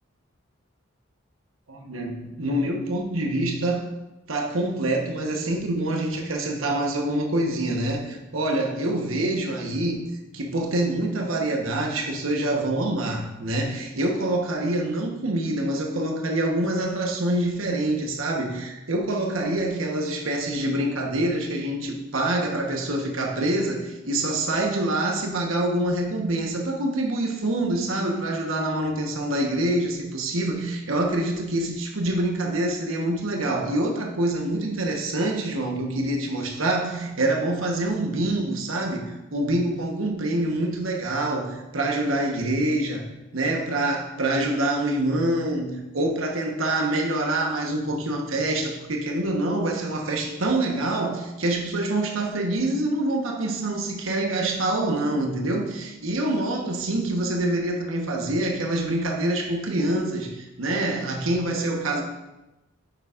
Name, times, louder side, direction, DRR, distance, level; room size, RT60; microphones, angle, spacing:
voice 1, 1.7-3.9 4.3-10.1 10.3-43.1 43.3-62.0, right 1 dB, 85° right, 1 dB, 1.1 m, -26 dB
9.4 x 6.9 x 2.5 m, 1.0 s
head